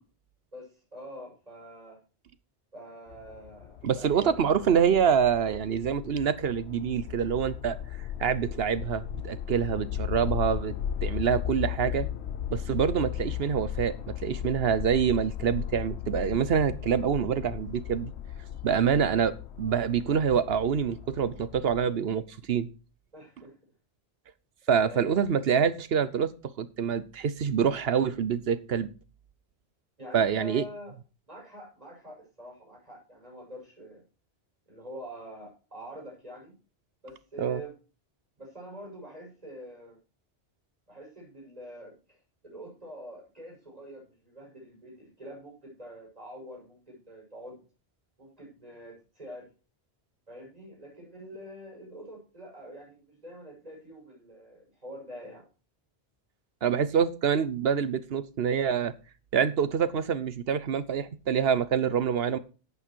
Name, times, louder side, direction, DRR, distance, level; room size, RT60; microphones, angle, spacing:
voice 1, 0.5-2.0 2.7-4.4 23.1-23.5 24.7-25.2 30.0-30.9 31.3-34.0 34.7-36.6 37.0-37.7 38.4-40.0 40.9-42.2 42.4-47.6 48.2-49.4 50.3-55.4, equal, 35° right, 6.4 m, -45 dB
sound 1, 3.1-21.8, left 10 dB, 80° left, 1.0 m, -36 dB
voice 2, 3.8-7.8 8.2-10.7 11.0-12.1 12.5-18.1 18.6-22.2 22.5-22.7 24.7-26.3 26.6-28.9 30.1-30.6 37.4-37.6 56.6-58.9 59.3-62.4, right 7 dB, 65° right, 1.0 m, -26 dB
10.5 x 8.6 x 4.5 m
omnidirectional pair, 1.1 m